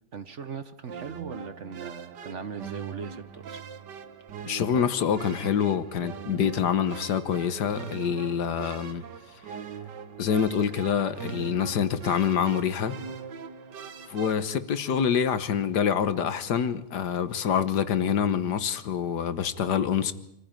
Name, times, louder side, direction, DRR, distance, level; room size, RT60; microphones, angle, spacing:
voice 1, 0.1-3.6, right 5 dB, 50° right, 1.2 m, -39 dB
sound 1, 0.9-14.6, right 7 dB, 80° right, 1.8 m, -41 dB
voice 2, 4.4-9.0 10.2-12.9 14.1-20.1, left 8 dB, 75° left, 1.7 m, -26 dB
26.0 x 15.0 x 9.0 m
omnidirectional pair, 1.8 m